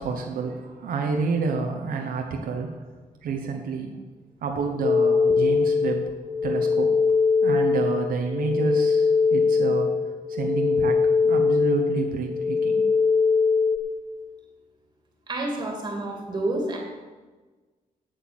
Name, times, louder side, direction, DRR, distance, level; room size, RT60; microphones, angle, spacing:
voice 1, 0.0-2.8 3.2-4.0 4.4-6.1 6.4-7.0 7.4-9.9 10.3-12.9, right 4 dB, 75° right, 3 dB, 1.1 m, -29 dB
sound 1, 4.8-13.8, left 5 dB, 20° left, 0.5 m, -22 dB
voice 2, 15.3-16.8, right 2 dB, 30° right, 0 dB, 2.7 m, -29 dB
8.3 x 8.1 x 8.1 m, 1.3 s
wide cardioid pair, 160°, 15 cm